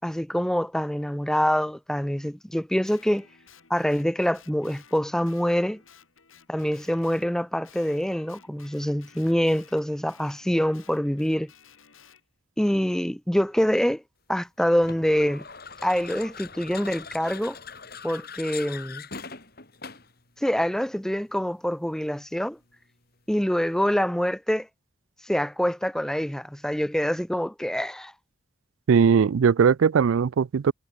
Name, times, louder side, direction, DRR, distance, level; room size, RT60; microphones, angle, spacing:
voice 1, 0.0-3.3 3.7-5.8 6.5-11.5 12.6-14.0 14.3-15.4 15.8-17.6 18.0-19.0 20.4-22.6 23.3-24.7 25.2-28.1, equal, 5° left, 0.4 m, -25 dB
Guitar, 2.8-7.3 7.6-12.2, left 7 dB, 85° left, 4.9 m, -55 dB
sound 1, 14.8-20.2, left 6 dB, 50° left, 5.0 m, -41 dB
voice 2, 28.9-30.7, right 6 dB, 80° right, 0.4 m, -19 dB
head